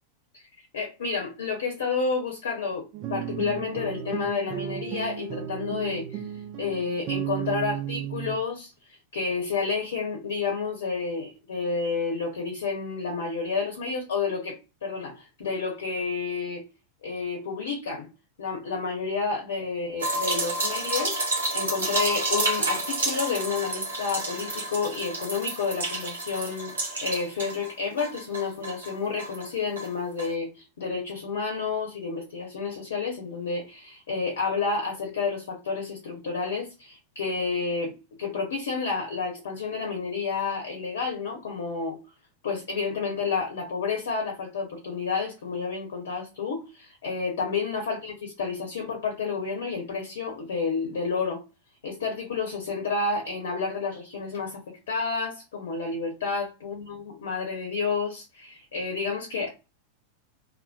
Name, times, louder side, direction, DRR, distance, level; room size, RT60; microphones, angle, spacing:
voice 1, 0.7-6.2 6.6-8.7 9.1-16.6 17.0-18.1 18.4-42.0 42.4-51.4 51.8-59.5, left 4 dB, 60° left, 0.8 m, -30 dB
sound 1, 2.9-8.4, right 10 dB, 40° right, 0.3 m, -34 dB
sound 2, 20.0-27.7 28.0-29.5 29.8-29.9 30.2-30.3, right 2 dB, 70° right, 1.1 m, -30 dB
2.7 x 2.1 x 2.2 m
figure-of-eight pair, 90°, 0 cm